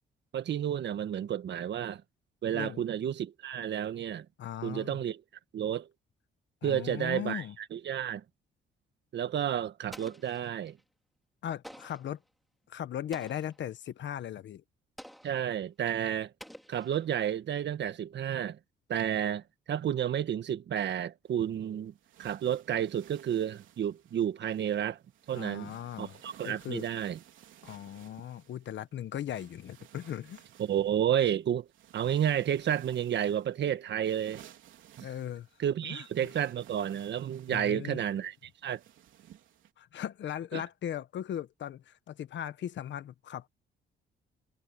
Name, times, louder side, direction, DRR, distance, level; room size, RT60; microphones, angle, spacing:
voice 1, 0.3-2.0 2.4-4.2 4.6-5.2 5.5-5.9 6.6-7.4 7.7-8.2 9.1-10.8 15.2-16.3 16.7-18.6 18.9-21.9 22.2-25.0 25.3-27.2 30.6-31.7 31.9-34.4 35.0-35.1 35.6-38.3 38.6-38.8 40.5-40.6, right 10 dB, 60° right, 1.5 m, -31 dB
voice 2, 4.4-5.0 6.6-7.5 11.4-12.2 12.7-14.6 25.3-26.2 26.4-26.8 27.6-30.4 35.0-35.5 35.8-36.1 37.5-38.0 39.8-43.5, left 10 dB, 65° left, 1.3 m, -38 dB
Explosion, 9.9-10.8 11.6-12.2 13.1-13.7 15.0-15.5 16.4-17.3, equal, ahead, 4.4 m, -50 dB
sound 1, 21.3-39.7, right 11 dB, 80° right, 3.7 m, -57 dB
cardioid pair, 90°, 20 cm